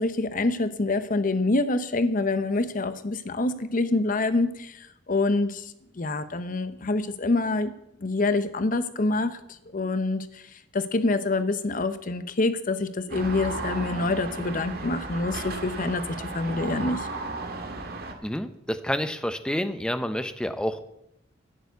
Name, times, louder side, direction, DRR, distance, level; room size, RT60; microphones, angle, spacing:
voice 1, 0.0-4.8 5.1-5.6 6.0-7.7 8.0-9.4 9.7-10.3 10.7-17.1, left 2 dB, 45° left, 12 dB, 0.7 m, -26 dB
sound 1, 13.1-18.1, right 3 dB, 55° right, 1.6 m, -34 dB
voice 2, 18.2-20.8, equal, 5° left, 10 dB, 0.7 m, -29 dB
11.0 x 6.9 x 8.1 m, 0.82 s
head